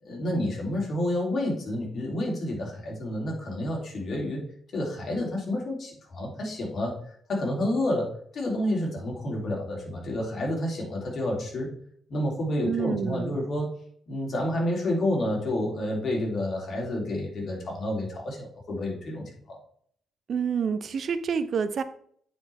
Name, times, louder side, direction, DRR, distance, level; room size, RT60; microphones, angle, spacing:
voice 1, 0.0-4.4 4.7-7.0 7.3-11.7 12.1-13.7 14.1-19.6, left 1 dB, 55° left, -1 dB, 3.1 m, -29 dB
voice 2, 12.5-13.4 20.3-21.8, right 6 dB, 60° right, 12 dB, 0.6 m, -28 dB
9.3 x 4.8 x 3.4 m, 0.62 s
cardioid pair, 80°, 0 cm